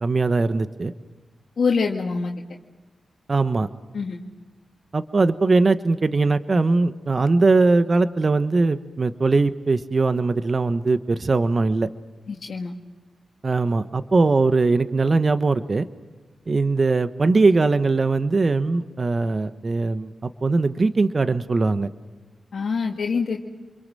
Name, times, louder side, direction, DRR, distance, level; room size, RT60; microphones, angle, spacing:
voice 1, 0.0-0.9 3.3-3.7 4.9-11.9 13.4-15.9 16.5-21.9, right 3 dB, 50° right, 11 dB, 1.1 m, -20 dB
voice 2, 1.6-2.3 3.9-4.2 12.3-12.7 22.5-23.4, left 5 dB, 70° left, -1 dB, 1.9 m, -24 dB
27.5 x 22.5 x 7.7 m, 1.3 s
cardioid pair, 45°, 0 cm